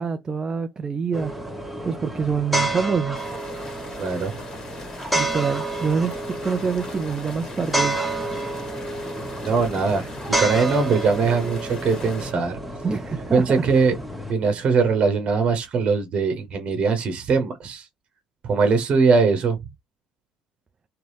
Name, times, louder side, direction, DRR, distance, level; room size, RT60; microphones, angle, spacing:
voice 1, 0.0-1.3 1.8-3.2 5.1-8.0 12.8-13.6, right 5 dB, 30° right, 0.5 m, -26 dB
sound 1, 1.1-14.3, right 2 dB, ahead, 1.3 m, -29 dB
sound 2, 3.1-12.3, left 2 dB, 30° left, 1.6 m, -41 dB
voice 2, 4.0-4.3 9.4-10.1 10.4-12.6 13.3-13.9 14.3-17.9 18.4-19.6, right 4 dB, 45° right, 1.0 m, -21 dB
3.8 x 2.2 x 3.3 m
figure-of-eight pair, 55°, 3 cm